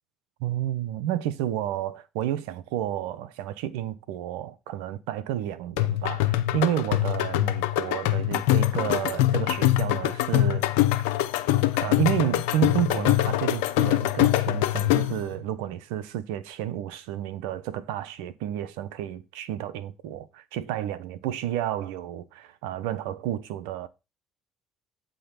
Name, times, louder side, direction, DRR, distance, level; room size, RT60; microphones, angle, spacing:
voice 1, 0.4-10.7 11.2-11.3 11.8-23.9, right 11 dB, 85° right, 0.8 m, -31 dB
sound 1, 5.8-15.3, left 15 dB, 85° left, 0.6 m, -24 dB
8.7 x 3.9 x 6.8 m
supercardioid pair, 75°, 0 cm